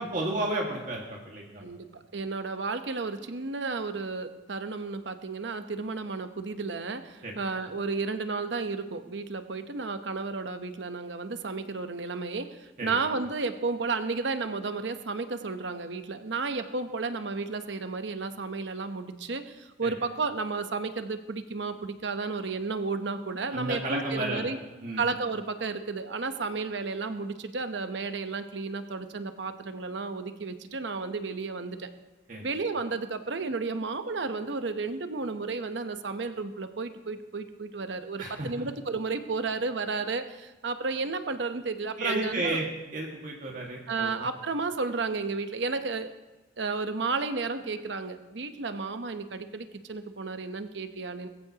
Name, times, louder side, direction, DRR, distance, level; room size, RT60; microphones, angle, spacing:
voice 1, 0.0-1.6 7.2-7.3 12.8-13.0 19.8-19.9 23.5-24.5 24.8-25.0 32.3-32.4 38.2-38.7 42.0-44.1, right 2 dB, 45° right, -1 dB, 1.8 m, -32 dB
voice 2, 1.6-24.6 25.0-31.9 32.4-42.7 43.9-46.1 46.6-51.3, right 4 dB, 75° right, 9 dB, 0.9 m, -32 dB
21.5 x 15.0 x 2.9 m, 1.1 s
head